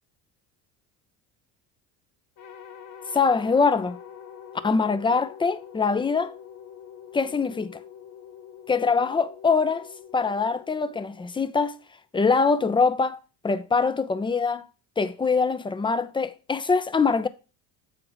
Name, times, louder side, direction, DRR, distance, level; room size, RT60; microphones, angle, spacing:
sound 1, 2.4-11.7, left 8 dB, 50° left, 1.1 m, -45 dB
voice 1, 3.1-4.0 4.6-6.3 7.1-7.8 8.7-9.9 10.1-11.8 12.1-13.2 13.4-14.7 15.0-17.3, left 4 dB, 10° left, 0.5 m, -23 dB
7.9 x 4.4 x 3.9 m
supercardioid pair, 90°, 42 cm